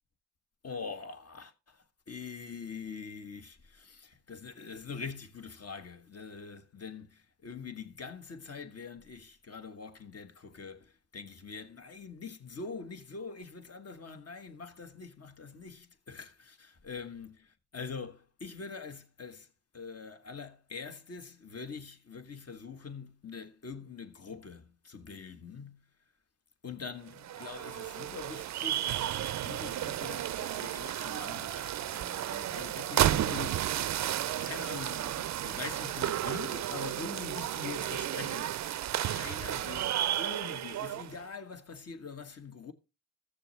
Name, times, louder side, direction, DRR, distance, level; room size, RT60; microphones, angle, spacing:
voice 1, 0.6-25.9 26.6-33.9 34.4-38.7 39.0-42.7, left 5 dB, 50° left, 1.3 m, -44 dB
sound 1, 27.1-41.2, right 12 dB, 55° right, 0.4 m, -33 dB
15.0 x 6.8 x 3.2 m
supercardioid pair, 50°, 32 cm